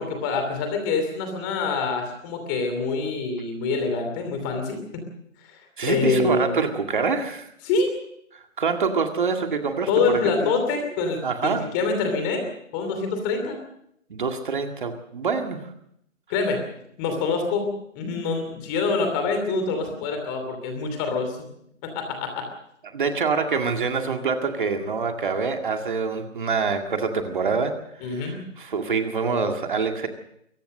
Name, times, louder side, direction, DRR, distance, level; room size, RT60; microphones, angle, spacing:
voice 1, 0.0-4.8 5.5-6.6 7.6-7.9 9.9-12.5 12.7-13.6 16.3-16.6 17.0-17.7 17.9-21.4 21.8-22.4 28.0-28.4, left 4 dB, 15° left, 5 dB, 2.8 m, -25 dB
voice 2, 5.8-7.5 8.3-10.5 11.2-11.7 14.1-15.6 22.9-30.1, right 5 dB, 40° right, 5 dB, 2.0 m, -26 dB
23.0 x 18.0 x 6.5 m, 0.74 s
figure-of-eight pair, 160°, 38 cm